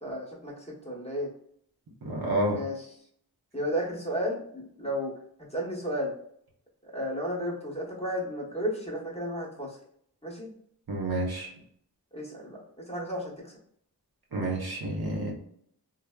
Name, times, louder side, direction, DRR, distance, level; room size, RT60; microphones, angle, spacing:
voice 1, 0.0-1.3 2.5-2.8 3.5-5.1 5.5-6.1 6.8-9.8 10.2-10.5 12.1-13.5, equal, 15° left, -3 dB, 0.9 m, -33 dB
voice 2, 2.0-2.6 10.9-11.5 14.3-15.3, right 1 dB, 75° right, -1 dB, 0.8 m, -29 dB
3.3 x 2.1 x 2.2 m, 0.67 s
wide cardioid pair, 50°, 38 cm